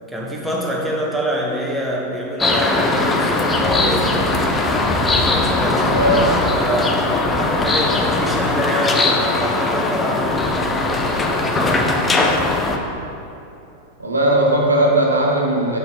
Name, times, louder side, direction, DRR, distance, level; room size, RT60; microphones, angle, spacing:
voice 1, 0.1-4.6 5.1-7.1 7.5-12.0, equal, ahead, -3 dB, 1.1 m, -26 dB
sound 1, 2.4-12.8, left 2 dB, 15° left, 0.6 m, -19 dB
voice 2, 5.8-6.4 14.0-15.8, right 1 dB, 80° right, -1 dB, 1.1 m, -18 dB
7.6 x 5.9 x 3.6 m, 2.7 s
figure-of-eight pair, 90°, 0 cm